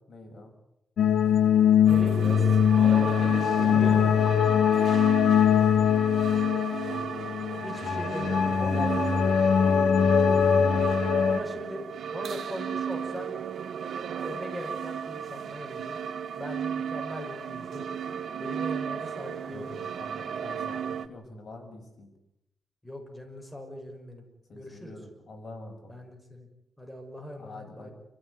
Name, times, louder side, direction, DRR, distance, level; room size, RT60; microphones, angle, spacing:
voice 1, 0.1-0.5 3.6-4.9 6.8-7.7 8.6-11.2 19.5-22.1 24.5-25.9 27.4-27.9, left 2 dB, 50° left, 3 dB, 6.8 m, -44 dB
sound 1, 1.0-11.4, left 8 dB, 80° left, 1.4 m, -22 dB
voice 2, 1.9-3.3 3.6-4.1 5.5-5.9 7.6-8.7 11.3-13.3 14.2-16.0 16.4-17.9 18.4-19.7 22.8-24.2 24.5-25.0 25.9-26.5 26.8-27.9, equal, 5° left, 2 dB, 6.1 m, -40 dB
sound 2, 1.9-21.1, right 8 dB, 75° right, 1.7 m, -35 dB
29.5 x 16.0 x 9.7 m, 0.83 s
wide cardioid pair, 125°, 0 cm